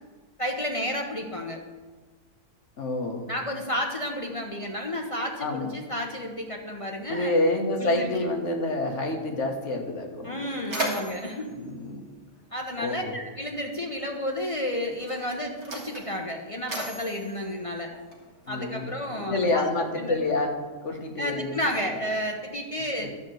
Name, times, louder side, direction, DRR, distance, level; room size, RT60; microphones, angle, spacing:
voice 1, 0.4-1.6 3.3-7.3 7.8-8.3 10.2-11.5 12.5-17.9 18.5-20.2 21.2-23.1, equal, 30° left, 1 dB, 0.7 m, -31 dB
voice 2, 2.8-3.2 5.4-5.7 7.1-10.5 11.6-12.0 12.8-13.2 18.5-18.9 19.2-20.5 20.8-21.6 23.0-23.1, left 2 dB, 50° left, 2 dB, 1.6 m, -28 dB
Mechanisms, 10.2-12.9 13.9-14.1 14.9-18.5, right 1 dB, 45° right, 2.0 m, -37 dB
11.5 x 4.4 x 7.8 m, 1.3 s
omnidirectional pair, 1.7 m